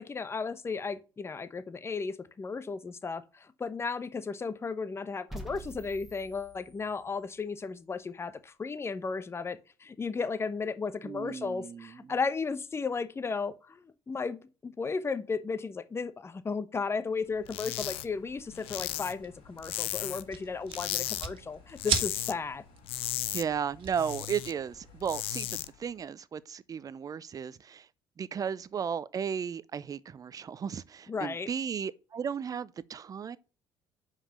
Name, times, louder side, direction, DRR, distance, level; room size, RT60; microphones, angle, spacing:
voice 1, 0.0-22.6 31.1-31.5, left 4 dB, 25° left, 0.8 m, -35 dB
sound 1, 5.3-7.4, right 1 dB, 5° right, 2.2 m, -46 dB
voice 2, 11.0-12.1 23.3-27.9 28.2-33.4, right 7 dB, 40° right, 0.6 m, -35 dB
sound 2, 17.5-18.1 18.3-20.3 20.7-21.3 21.6-22.4 22.7-24.5 24.9-25.7, left 15 dB, 75° left, 0.6 m, -35 dB
sound 3, 18.3-25.0, right 7 dB, 60° right, 1.5 m, -39 dB
5.6 x 5.0 x 6.6 m
supercardioid pair, 75°, 10 cm